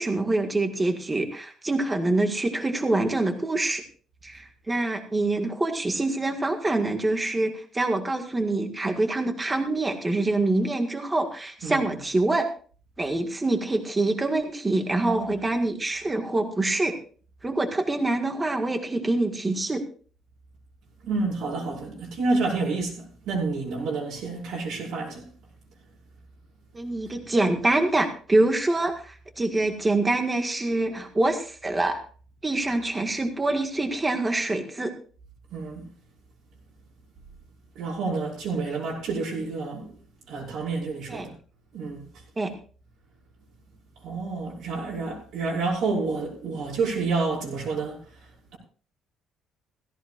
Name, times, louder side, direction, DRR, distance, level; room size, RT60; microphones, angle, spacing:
voice 1, 0.0-3.8 4.2-12.5 13.0-16.9 17.4-19.8 26.7-32.0 32.4-34.9 41.1-41.3 42.4-42.5, right 2 dB, 10° right, 1.8 m, -25 dB
voice 2, 15.0-15.4 21.0-25.3 35.5-35.8 37.8-39.9 40.3-41.3 41.7-42.0 44.0-48.0, right 3 dB, 60° right, 5.6 m, -29 dB
17.0 x 16.5 x 2.5 m
cardioid pair, 180°, 0 cm